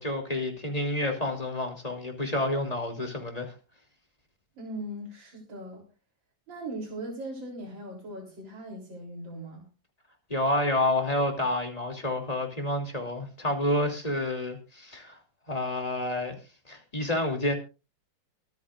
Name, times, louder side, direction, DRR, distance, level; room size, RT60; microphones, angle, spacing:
voice 1, 0.0-3.5 10.3-15.2 15.5-16.3 16.7-17.5, left 1 dB, 20° left, 3 dB, 2.9 m, -29 dB
voice 2, 4.6-5.9 6.5-9.7, right 1 dB, 80° right, 0 dB, 4.3 m, -39 dB
24.0 x 9.5 x 2.5 m, 0.32 s
omnidirectional pair, 2.1 m